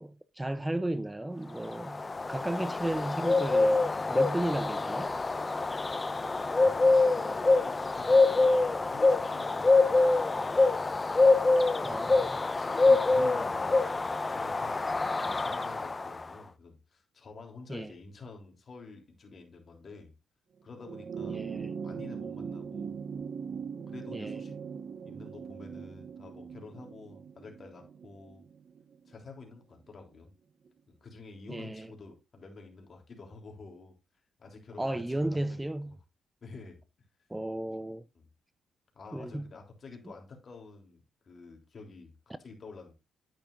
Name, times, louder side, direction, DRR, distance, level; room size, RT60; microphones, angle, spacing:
voice 1, 0.0-2.0 2.3-5.1 11.8-12.4 17.7-17.9 21.3-21.7 24.1-24.4 31.5-31.9 34.8-35.9 37.3-38.0 39.1-39.4, right 1 dB, 15° right, 0.6 m, -34 dB
Bird, 1.6-16.3, left 3 dB, 30° left, 0.7 m, -25 dB
voice 2, 6.6-8.6 8.9-10.6 11.9-12.1 12.6-14.9 15.2-20.1 20.6-21.5 21.8-23.0 23.9-24.6 25.0-28.4 29.1-30.3 30.9-34.0 34.4-36.0 36.4-36.8 38.2-38.3 39.0-42.1 42.4-42.9, left 4 dB, 50° left, 3.5 m, -49 dB
sound 1, 20.8-29.5 30.7-30.8, right 6 dB, 55° right, 0.9 m, -40 dB
9.4 x 8.7 x 2.6 m
supercardioid pair, 60°, 0 cm